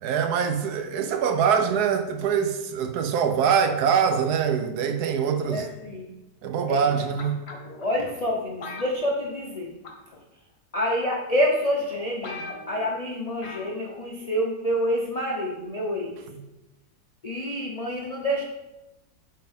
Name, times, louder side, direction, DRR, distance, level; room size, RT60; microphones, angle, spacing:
voice 1, 0.0-5.7 6.4-7.4, right 7 dB, 70° right, 1.1 m, -24 dB
voice 2, 5.5-6.1 6.7-6.9 7.8-9.7 10.7-16.1 17.2-18.4, equal, 80° left, 0.3 m, -27 dB
sound 1, 7.2-7.8 8.6-9.6 9.8-10.2 11.0-11.1 11.6-11.7 11.9-12.0 12.2-12.9 13.4-13.7 14.0-14.1, left 3 dB, 45° left, 1.1 m, -39 dB
7.7 x 4.3 x 3.6 m
omnidirectional pair, 1.9 m